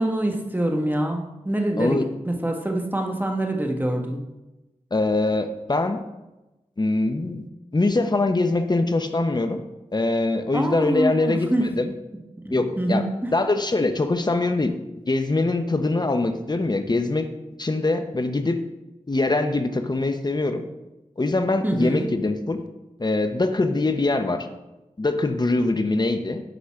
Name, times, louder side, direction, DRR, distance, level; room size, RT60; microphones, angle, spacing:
voice 1, 0.0-2.0 2.2-4.2 10.5-11.7 12.4-13.3 21.6-22.1, right 1 dB, 15° right, 2 dB, 1.4 m, -25 dB
voice 2, 1.8-2.1 4.9-6.0 6.8-7.4 7.7-9.6 9.9-11.9 12.5-14.7 15.1-17.3 17.6-18.6 19.1-20.6 21.2-22.7 23.0-24.5 25.0-26.4, left 2 dB, 35° left, 7 dB, 0.9 m, -23 dB
10.0 x 4.0 x 5.9 m, 1.0 s
wide cardioid pair, 60°, 12 cm